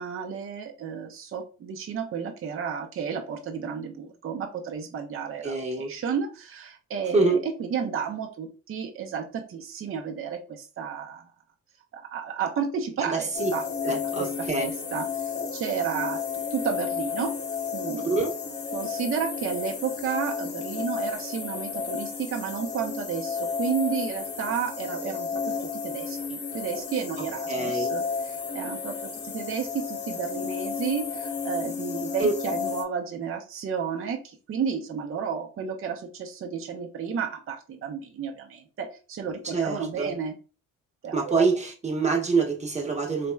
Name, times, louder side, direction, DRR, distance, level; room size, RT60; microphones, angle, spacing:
voice 1, 0.0-11.2 11.9-16.2 16.5-17.4 17.7-18.1 18.7-40.4 41.0-41.5, right 6 dB, 45° right, 0.7 m, -32 dB
voice 2, 5.4-5.9 7.1-7.4 13.0-13.5 13.8-14.6 18.0-18.4 27.5-27.9 32.2-32.3 39.4-40.1 41.1-43.3, right 4 dB, 20° right, 1.1 m, -25 dB
sound 1, 13.3-32.8, left 5 dB, 35° left, 0.9 m, -32 dB
4.2 x 3.0 x 2.3 m
cardioid pair, 90°, 30 cm